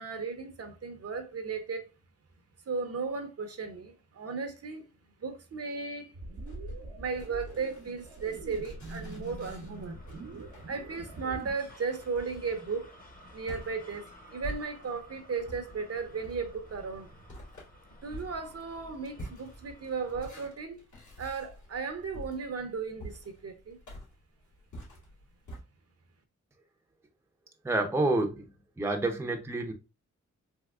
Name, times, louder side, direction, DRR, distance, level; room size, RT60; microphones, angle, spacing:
voice 1, 0.0-1.9 2.7-4.8 5.2-6.1 7.0-10.0 10.7-12.9 13.3-17.1 18.0-20.8 21.2-23.8, right 5 dB, 55° right, 0.6 m, -35 dB
sound 1, 6.1-11.5, right 2 dB, 85° right, 0.8 m, -44 dB
sound 2, 6.3-15.1 15.4-25.6, equal, 70° left, 2.0 m, -47 dB
sound 3, 8.3-20.4, left 1 dB, 30° left, 0.8 m, -54 dB
voice 2, 27.6-28.5 28.8-29.7, right 2 dB, 10° right, 0.5 m, -28 dB
3.6 x 2.8 x 2.3 m
cardioid pair, 85°, 30 cm